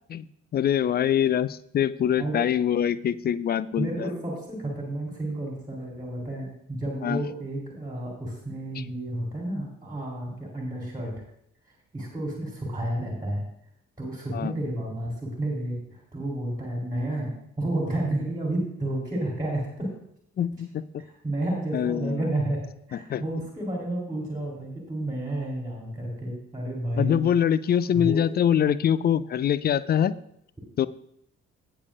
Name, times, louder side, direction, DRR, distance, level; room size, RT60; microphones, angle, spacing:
voice 1, 0.5-4.1 7.0-7.2 14.3-14.5 20.4-21.0 21.7-22.2 22.9-23.2 27.0-30.1 30.8-30.9, left 9 dB, 25° left, 18 dB, 0.4 m, -24 dB
voice 2, 3.8-11.2 11.9-13.5 14.0-19.9 21.0-22.6 22.9-27.3 27.9-28.2, right 1 dB, 10° right, -2 dB, 3.2 m, -31 dB
18.0 x 6.8 x 2.5 m, 0.72 s
figure-of-eight pair, 40°, 37 cm